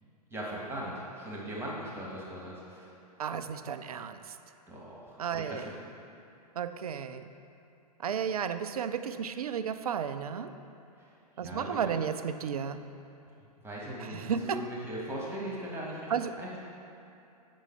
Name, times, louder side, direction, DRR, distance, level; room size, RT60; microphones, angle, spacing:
voice 1, 0.3-2.9 4.7-5.7 11.4-12.0 13.6-16.1 16.4-16.6, equal, 10° right, -5 dB, 1.5 m, -39 dB
voice 2, 3.2-4.4 5.2-5.7 6.6-7.3 8.0-10.6 11.4-12.8 14.0-14.7 16.1-16.4, right 7 dB, 65° right, 10 dB, 0.4 m, -33 dB
8.1 x 5.4 x 4.4 m, 2.7 s
figure-of-eight pair, 105°, 20 cm